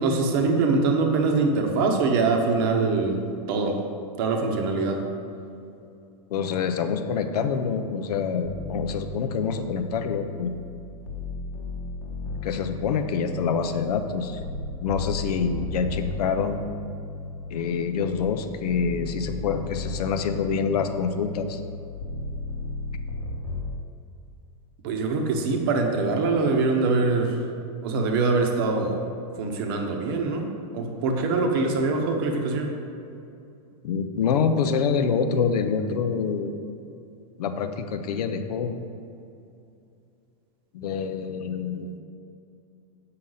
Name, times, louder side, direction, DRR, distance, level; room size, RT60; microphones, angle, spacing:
voice 1, 0.0-3.8 4.2-5.0 24.8-27.4 27.8-29.1 29.4-32.7, right 3 dB, 35° right, 3 dB, 0.8 m, -23 dB
voice 2, 6.3-10.5 12.4-14.4 14.8-16.6 17.5-21.6 33.8-36.5 37.4-38.7 40.7-42.0, left 6 dB, 85° left, 8 dB, 0.6 m, -26 dB
sound 1, 8.4-10.6 11.1-18.2 18.7-23.7, left 2 dB, 55° left, 1.0 m, -34 dB
7.8 x 5.7 x 3.9 m, 2.6 s
supercardioid pair, 180°, 20 cm